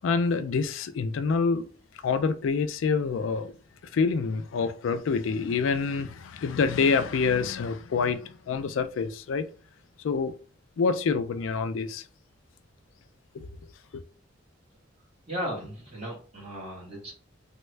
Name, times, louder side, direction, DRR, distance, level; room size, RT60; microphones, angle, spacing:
voice 1, 0.0-1.6 2.0-3.5 3.9-9.5 10.0-10.4 10.8-12.0 13.3-13.5 13.9-14.0, left 5 dB, 80° left, 0.4 m, -26 dB
voice 2, 15.3-17.1, equal, 35° right, 1.3 m, -36 dB
3.4 x 2.2 x 3.1 m
head